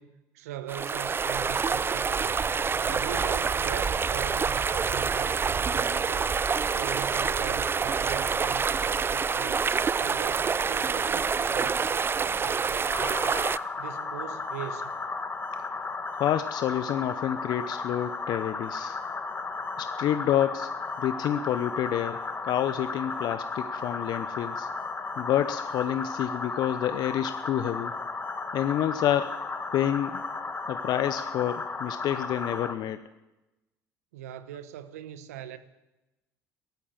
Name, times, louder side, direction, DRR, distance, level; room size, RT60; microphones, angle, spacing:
voice 1, 0.0-2.4 2.8-6.4 6.7-9.6 10.0-13.5 13.8-15.0 34.1-35.6, right 11 dB, 85° right, 1.0 m, -41 dB
babbling-brook a-minute-of-VT-Zen, 0.7-13.6, right 5 dB, 30° right, 0.5 m, -27 dB
sound 1, 12.9-32.7, left 4 dB, 25° left, 1.6 m, -34 dB
voice 2, 16.1-19.0 19.8-20.7 21.0-24.7 25.2-27.9 28.5-29.4 29.7-30.2 30.7-33.0, left 11 dB, 60° left, 0.8 m, -28 dB
13.5 x 13.5 x 7.3 m
hypercardioid pair, 60°, 8 cm